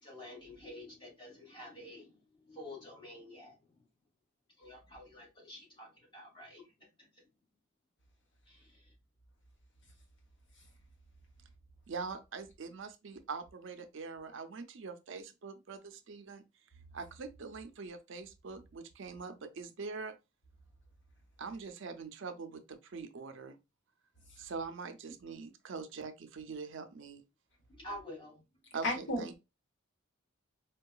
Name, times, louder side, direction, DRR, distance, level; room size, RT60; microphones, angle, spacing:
voice 1, 0.0-3.8 4.6-7.1 8.5-8.9 27.7-28.4, left 1 dB, 25° left, 1.8 m, -49 dB
voice 2, 11.9-16.4 16.9-20.1 21.4-23.6 24.4-27.2 28.7-29.3, right 4 dB, 65° right, 0.5 m, -43 dB
voice 3, 28.8-29.3, left 1 dB, 65° left, 1.2 m, -33 dB
4.5 x 2.3 x 2.3 m
head